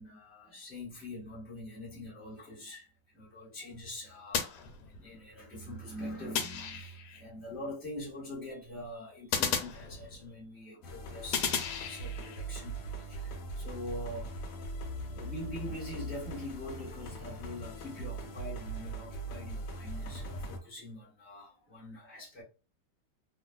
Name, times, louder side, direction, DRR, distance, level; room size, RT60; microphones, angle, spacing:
voice 1, 0.0-14.4 15.1-22.4, left 1 dB, 5° right, 0.8 m, -44 dB
sound 1, 4.3-5.3 6.3-7.2 9.3-10.4 11.3-12.4, left 7 dB, 85° left, 1.4 m, -34 dB
sound 2, 10.8-20.6, right 2 dB, 70° left, 1.1 m, -41 dB
3.0 x 2.5 x 2.3 m
omnidirectional pair, 2.2 m